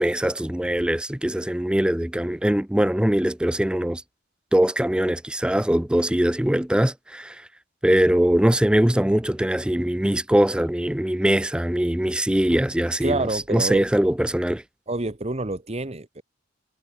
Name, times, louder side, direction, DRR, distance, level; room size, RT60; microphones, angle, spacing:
voice 1, 0.0-4.0 4.5-7.4 7.8-13.2 13.5-14.6, right 1 dB, 5° right, 0.4 m, -22 dB
voice 2, 13.0-13.9 14.9-16.2, right 2 dB, 35° right, 1.2 m, -27 dB
head